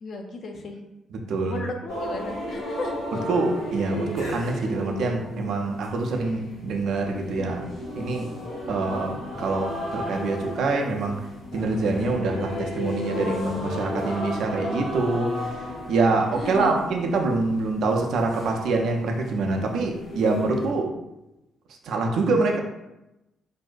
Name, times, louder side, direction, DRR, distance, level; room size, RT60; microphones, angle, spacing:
voice 1, 0.0-0.8 1.5-3.2 8.6-9.0 16.3-17.0, left 3 dB, 55° left, 3 dB, 0.4 m, -35 dB
voice 2, 1.1-1.6 3.3-7.7 8.0-8.3 8.7-11.2 11.5-20.9 21.8-22.6, right 3 dB, 65° right, 2 dB, 0.4 m, -25 dB
sound 1, 1.9-20.7, equal, 80° left, 1.2 m, -34 dB
2.6 x 2.1 x 2.4 m, 0.93 s
hypercardioid pair, 45°, 0 cm